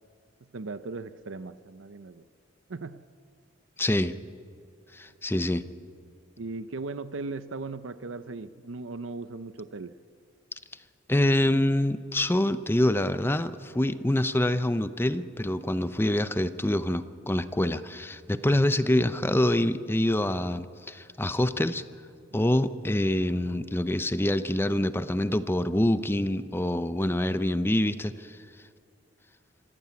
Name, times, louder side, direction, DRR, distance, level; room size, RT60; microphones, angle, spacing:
voice 1, 0.5-2.2 2.7-3.0 6.4-9.9, right 3 dB, 70° right, 13 dB, 0.7 m, -38 dB
voice 2, 3.8-4.1 4.9-5.6 11.1-21.8 22.3-28.4, left 1 dB, 10° left, 12 dB, 0.6 m, -26 dB
25.5 x 15.5 x 8.4 m, 2.4 s
head